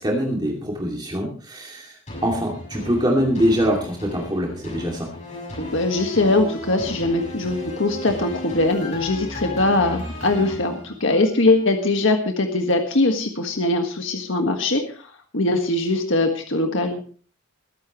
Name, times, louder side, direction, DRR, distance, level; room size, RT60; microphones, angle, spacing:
voice 1, 0.0-5.1, equal, 20° right, -1 dB, 2.5 m, -23 dB
sound 1, 2.1-11.5 11.9-12.0, left 1 dB, 35° left, 6.4 m, -35 dB
voice 2, 5.6-17.0, left 2 dB, 65° left, 4 dB, 1.7 m, -21 dB
21.0 x 11.5 x 3.1 m, 0.41 s
head